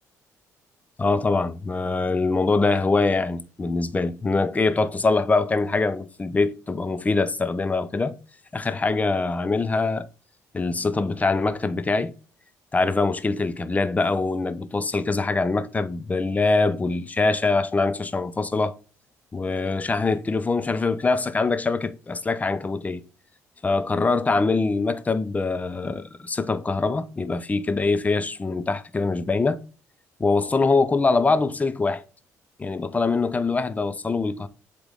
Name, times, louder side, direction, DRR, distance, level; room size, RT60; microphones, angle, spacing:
voice 1, 1.0-8.2 8.5-10.1 10.5-12.1 12.7-18.8 19.3-23.0 23.6-29.6 30.2-32.0 32.6-34.5, left 3 dB, 25° left, 0.8 m, -23 dB
8.0 x 3.4 x 4.1 m
cardioid pair, 80°, 6 cm